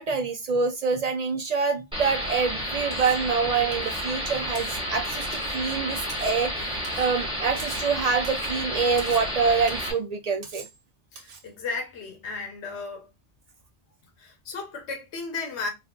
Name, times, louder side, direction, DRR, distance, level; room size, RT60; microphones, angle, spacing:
voice 1, 0.0-10.7, right 5 dB, 70° right, 0.3 m, -26 dB
sound 1, 1.9-9.9, equal, 5° right, 1.3 m, -31 dB
Cutlery silverware, 2.9-3.3 3.7-4.1 4.5-4.8 5.3-5.6 6.1-6.4 6.8-7.1 7.6-7.9 8.2-8.6 9.0-9.3 9.7-10.0 10.4-10.8 11.2-11.5, right 5 dB, 90° right, 1.2 m, -44 dB
voice 2, 11.1-13.1 14.2-15.7, left 4 dB, 70° left, 1.2 m, -34 dB
4.0 x 2.4 x 2.3 m
omnidirectional pair, 1.2 m